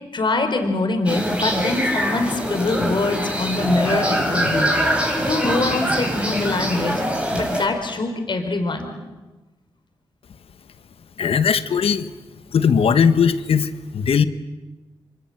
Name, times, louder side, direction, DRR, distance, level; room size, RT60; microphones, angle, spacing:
voice 1, 0.1-7.0 7.3-9.0, left 2 dB, 50° left, 6 dB, 4.4 m, -24 dB
sound 1, 1.1-7.7, equal, 10° right, 6.3 m, -23 dB
voice 2, 11.2-12.1 12.5-14.2, left 6 dB, 75° left, 12 dB, 1.3 m, -18 dB
26.0 x 24.5 x 7.9 m, 1.2 s
cardioid pair, 60°, 10 cm